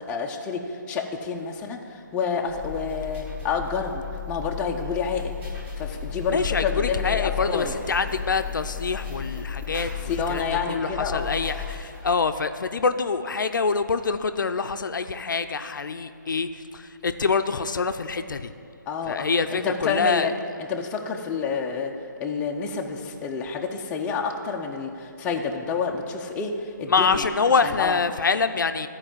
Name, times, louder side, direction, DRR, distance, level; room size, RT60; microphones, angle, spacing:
voice 1, 0.0-5.3 5.8-7.7 10.1-11.5 18.9-19.2 19.5-20.3 20.7-21.9 22.2-27.3 27.6-28.0, left 5 dB, 10° left, 1 dB, 0.5 m, -29 dB
sound 1, 2.5-12.4, left 8 dB, 15° right, 1.4 m, -34 dB
voice 2, 6.3-18.5 19.1-20.3 26.9-28.9, left 5 dB, 70° left, 9 dB, 0.5 m, -25 dB
12.5 x 4.7 x 7.4 m, 2.5 s
figure-of-eight pair, 150°, 11 cm